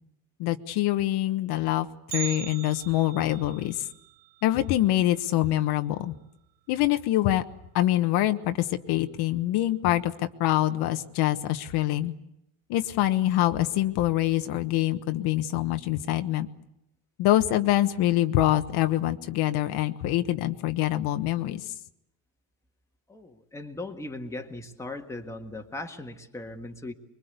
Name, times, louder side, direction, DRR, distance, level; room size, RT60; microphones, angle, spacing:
voice 1, 0.4-1.9 2.1-3.8 4.4-6.1 6.7-7.4 7.7-12.1 12.7-16.5 17.2-21.7, left 14 dB, 60° left, 8 dB, 1.2 m, -25 dB
Bell, 2.1-6.2 6.5-6.6 7.1-7.2 8.0-8.1 8.8-9.1 9.5-9.6, right 13 dB, 65° right, 1.3 m, -42 dB
voice 2, 23.1-26.9, left 2 dB, 5° left, 3 dB, 1.7 m, -38 dB
25.0 x 23.0 x 8.1 m, 0.82 s
cardioid pair, 155°, 43 cm